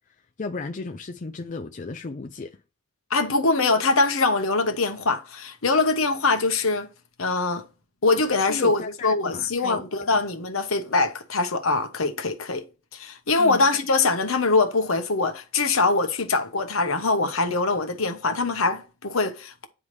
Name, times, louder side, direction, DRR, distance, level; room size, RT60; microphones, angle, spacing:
voice 1, 0.4-2.6 8.5-9.8 13.4-13.7, left 3 dB, 35° left, 0.5 m, -34 dB
voice 2, 3.1-6.9 7.2-7.6 8.0-12.6 12.9-19.7, left 3 dB, 75° left, 1.0 m, -23 dB
9.7 x 3.5 x 3.2 m
head